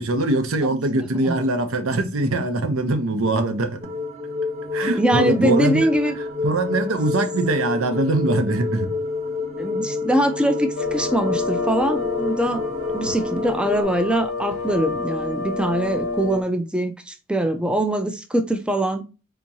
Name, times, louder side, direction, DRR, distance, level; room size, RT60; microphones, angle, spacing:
voice 1, 0.0-3.8 4.7-5.9 6.4-8.9, right 2 dB, 85° right, 0.7 m, -22 dB
sound 1, 3.8-13.8, left 4 dB, 35° right, 0.9 m, -28 dB
voice 2, 4.8-6.1 9.6-12.6 12.9-19.0, right 1 dB, 5° right, 0.3 m, -23 dB
sound 2, 10.8-16.4, left 3 dB, 70° left, 0.7 m, -28 dB
3.5 x 2.9 x 2.7 m
head